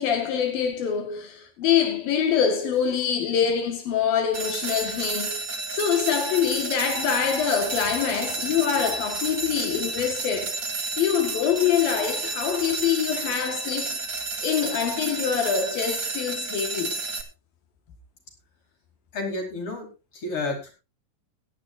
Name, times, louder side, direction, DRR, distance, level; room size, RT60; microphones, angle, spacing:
voice 1, 0.0-5.4 5.7-10.6 11.0-14.0 14.4-17.0, left 8 dB, 85° left, 3.7 m, -25 dB
sound 1, 4.3-17.2, right 3 dB, 40° right, 2.3 m, -31 dB
voice 2, 19.1-19.9 20.1-20.7, left 3 dB, 40° left, 5.6 m, -30 dB
16.5 x 12.5 x 2.7 m
omnidirectional pair, 4.0 m